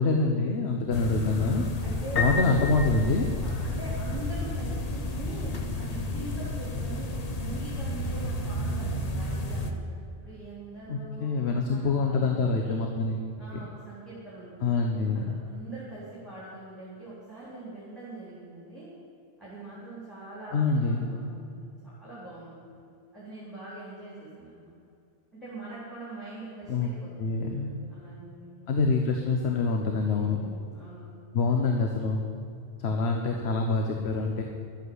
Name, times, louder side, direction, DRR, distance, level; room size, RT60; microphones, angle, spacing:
voice 1, 0.0-1.6 2.1-3.3 10.9-13.3 14.6-15.3 20.5-21.1 26.7-26.9 27.2-27.7 28.7-30.4 31.3-32.2 32.8-34.4, left 3 dB, 70° left, 3 dB, 1.2 m, -26 dB
sound 1, 0.9-9.7, left 1 dB, 40° left, 0.9 m, -32 dB
voice 2, 1.8-2.6 3.4-10.0 10.2-12.9 13.4-14.7 15.1-18.9 19.4-22.8 23.1-24.7 25.3-28.8 29.9-31.1, right 2 dB, ahead, -9 dB, 3.5 m, -43 dB
Piano, 2.2-4.0, left 4 dB, 90° left, 1.7 m, -32 dB
12.0 x 8.4 x 7.8 m, 2.5 s
omnidirectional pair, 1.1 m